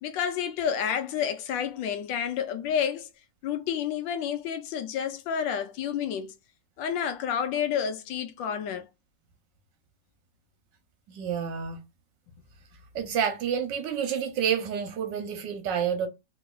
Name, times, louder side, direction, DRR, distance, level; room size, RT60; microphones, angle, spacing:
voice 1, 0.0-3.1 3.4-6.3 6.8-8.8, left 8 dB, 75° left, 1.2 m, -30 dB
voice 2, 11.1-11.8 12.9-16.1, right 8 dB, 70° right, 1.2 m, -29 dB
3.1 x 3.0 x 2.2 m
omnidirectional pair, 2.2 m